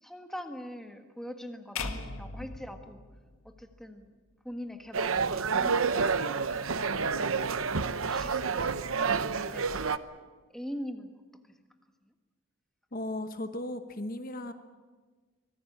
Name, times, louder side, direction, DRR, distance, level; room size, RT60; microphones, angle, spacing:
voice 1, 0.0-3.0 3.4-4.1 4.4-7.6 7.9-9.7 10.5-11.2, equal, ahead, 5 dB, 1.5 m, -43 dB
sound 1, 1.8-4.0, left 4 dB, 85° left, 1.9 m, -39 dB
sound 2, 4.9-10.0, right 5 dB, 80° right, 0.9 m, -29 dB
voice 2, 12.9-14.5, left 1 dB, 40° left, 8 dB, 1.1 m, -36 dB
25.0 x 19.0 x 8.6 m, 1.4 s
head